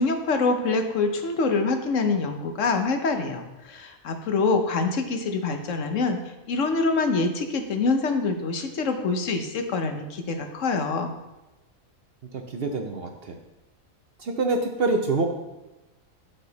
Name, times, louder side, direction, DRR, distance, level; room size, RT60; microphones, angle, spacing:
voice 1, 0.0-6.2 6.5-11.1, left 3 dB, 65° left, 6 dB, 1.1 m, -25 dB
voice 2, 12.5-13.3 14.2-15.3, right 3 dB, 55° right, 4 dB, 0.8 m, -25 dB
9.8 x 5.6 x 3.9 m, 1.0 s
omnidirectional pair, 1.5 m